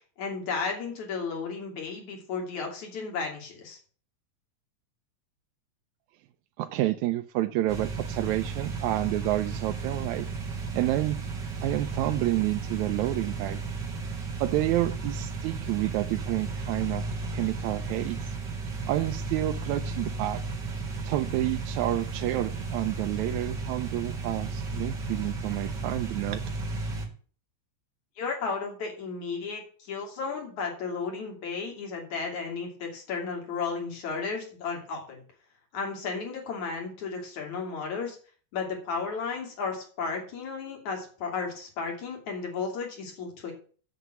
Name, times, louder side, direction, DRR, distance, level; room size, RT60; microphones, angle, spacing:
voice 1, 0.2-3.8 28.2-35.2 35.7-38.2 38.5-43.5, left 5 dB, 75° left, 1 dB, 4.2 m, -34 dB
voice 2, 6.6-10.3 10.7-11.2 11.6-13.6 14.4-17.0 17.3-18.2 18.9-20.4 21.1-26.5, right 15 dB, 80° right, 7 dB, 2.0 m, -29 dB
sound 1, 7.7-27.1, right 4 dB, 40° right, 3.0 m, -34 dB
8.0 x 7.0 x 8.0 m, 0.42 s
omnidirectional pair, 3.3 m